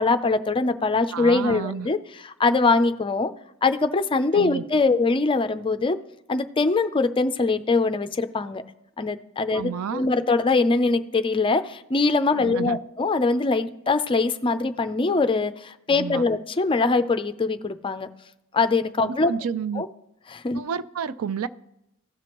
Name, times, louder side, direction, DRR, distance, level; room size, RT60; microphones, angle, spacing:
voice 1, 0.0-2.0 2.2-3.3 3.6-6.0 6.3-8.6 9.0-18.1 18.5-19.3 19.8-19.9 20.3-20.6, left 3 dB, 25° left, 10 dB, 0.4 m, -22 dB
voice 2, 1.1-1.9 4.3-4.6 9.5-10.1 12.4-12.8 15.9-16.2 19.0-19.8 20.5-21.5, right 7 dB, 85° right, 14 dB, 0.4 m, -30 dB
16.5 x 6.0 x 3.0 m, 0.83 s
head